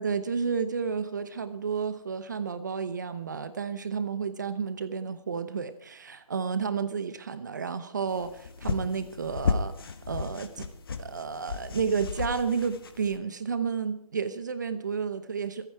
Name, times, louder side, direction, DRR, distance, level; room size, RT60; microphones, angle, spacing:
voice 1, 0.0-9.7 10.1-10.7 11.0-15.7, right 6 dB, 30° right, 12 dB, 0.9 m, -31 dB
sound 1, 8.1-13.2, left 5 dB, 40° left, 1.3 m, -34 dB
26.0 x 9.6 x 4.7 m, 0.63 s
figure-of-eight pair, 165°, 20 cm